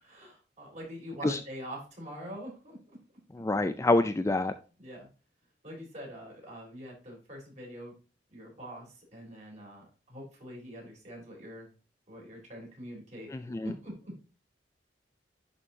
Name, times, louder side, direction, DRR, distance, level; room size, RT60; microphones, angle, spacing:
voice 1, 0.0-2.8 4.8-5.1 5.6-7.9 8.3-11.7 12.1-13.3 13.6-14.2, equal, 40° right, -2 dB, 3.9 m, -44 dB
voice 2, 3.3-4.5 13.3-13.7, left 2 dB, 15° left, 10 dB, 0.3 m, -27 dB
11.0 x 4.4 x 2.8 m, 0.35 s
head